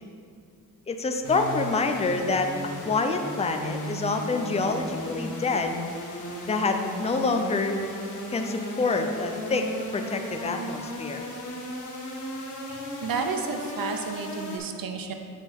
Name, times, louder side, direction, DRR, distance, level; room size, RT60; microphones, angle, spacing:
voice 1, 0.9-2.5 2.8-5.8 6.5-7.8 8.3-9.7 9.9-11.2, left 3 dB, 20° left, 5 dB, 0.4 m, -27 dB
sound 1, 1.2-14.6, equal, 55° left, 1.7 m, -36 dB
voice 2, 12.7-15.1, right 5 dB, 70° right, 5 dB, 0.7 m, -32 dB
7.5 x 5.5 x 3.5 m, 2.3 s
wide cardioid pair, 130°, 36 cm